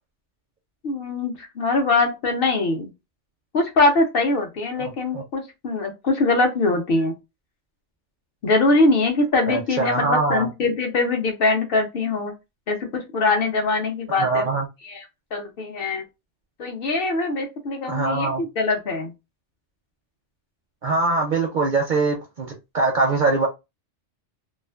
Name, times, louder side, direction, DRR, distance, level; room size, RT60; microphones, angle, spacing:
voice 1, 0.8-2.9 3.5-7.1 8.4-12.3 12.7-14.5 14.8-15.0 15.3-16.0 16.6-19.1, left 3 dB, 60° left, 0.7 m, -22 dB
voice 2, 9.5-10.5 14.2-14.7 17.9-18.4 20.8-23.5, right 3 dB, 60° right, 0.5 m, -22 dB
2.4 x 2.4 x 2.3 m
omnidirectional pair, 1.2 m